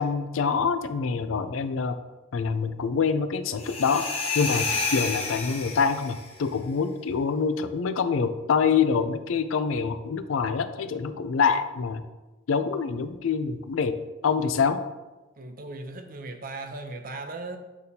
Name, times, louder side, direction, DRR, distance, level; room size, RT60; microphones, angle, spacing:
voice 1, 0.0-2.0 2.3-4.0 4.3-12.0 12.5-14.0 14.2-14.8, left 5 dB, 70° left, 0.4 m, -25 dB
sound 1, 3.6-6.3, left 4 dB, 30° left, 0.9 m, -30 dB
voice 2, 15.4-17.6, right 2 dB, 45° right, 0.6 m, -37 dB
8.3 x 4.1 x 2.8 m
head